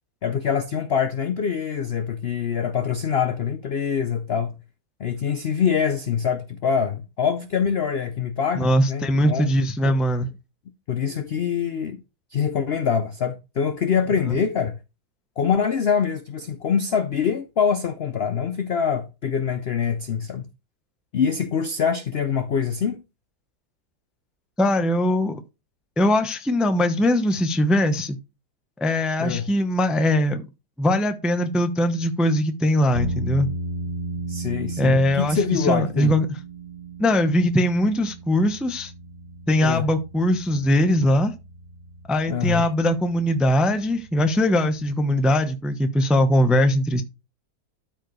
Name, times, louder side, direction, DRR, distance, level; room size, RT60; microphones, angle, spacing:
voice 1, 0.2-4.5 5.0-9.5 9.8-10.0 10.9-12.0 12.3-14.8 15.4-20.4 21.1-23.0 29.2-29.5 34.3-36.1 39.6-39.9 42.3-42.7, left 7 dB, 75° left, 0.5 m, -24 dB
voice 2, 8.5-10.3 24.6-25.4 26.0-28.2 28.8-30.4 30.8-33.5 34.8-36.3 37.0-38.9 39.5-41.3 42.1-47.0, left 1 dB, ahead, 0.4 m, -21 dB
sound 1, 32.9-45.5, right 3 dB, 35° right, 1.0 m, -36 dB
13.0 x 4.7 x 3.2 m
omnidirectional pair, 1.9 m